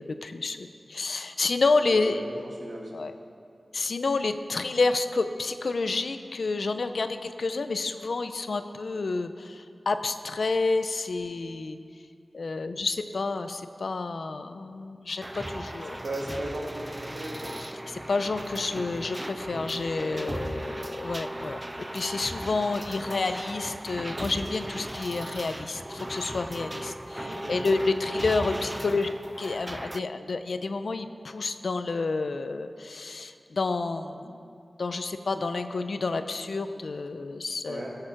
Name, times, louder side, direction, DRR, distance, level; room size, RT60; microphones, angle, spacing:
voice 1, 0.0-2.2 2.9-3.1 3.7-11.8 12.3-16.0 17.9-29.1 29.4-34.4 34.8-37.9, left 3 dB, 80° left, 9 dB, 0.6 m, -29 dB
voice 2, 1.9-2.2 2.6-2.9 15.9-17.6 27.2-27.6 28.4-28.7 37.7-38.0, right 1 dB, 80° right, -2 dB, 2.1 m, -36 dB
sound 1, 15.2-30.0, right 1 dB, 20° right, 0.3 m, -37 dB
15.5 x 6.7 x 5.9 m, 2.5 s
wide cardioid pair, 55°, 0 cm